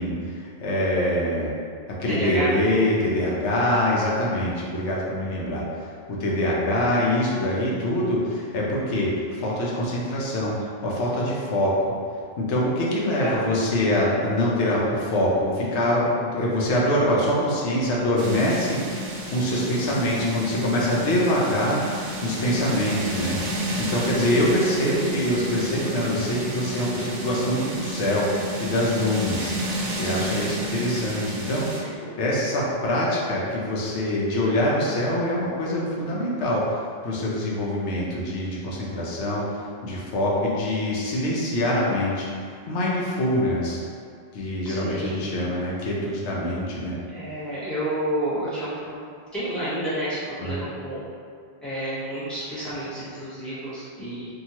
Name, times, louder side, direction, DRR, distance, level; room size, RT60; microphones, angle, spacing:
voice 1, 0.0-1.5 1.9-5.6 6.1-11.8 12.4-29.5 29.9-42.3 42.7-43.8 44.3-47.0 50.4-50.6, left 1 dB, 80° left, -4 dB, 0.9 m, -24 dB
voice 2, 2.0-2.5 13.1-13.4 31.7-32.1 44.6-45.3 47.1-49.0 49.3-51.0 51.6-54.3, right 1 dB, ahead, -13 dB, 1.0 m, -30 dB
sound 1, 18.2-31.8, right 1 dB, 60° right, 0.6 m, -31 dB
2.8 x 2.3 x 2.8 m, 2.2 s
omnidirectional pair, 1.1 m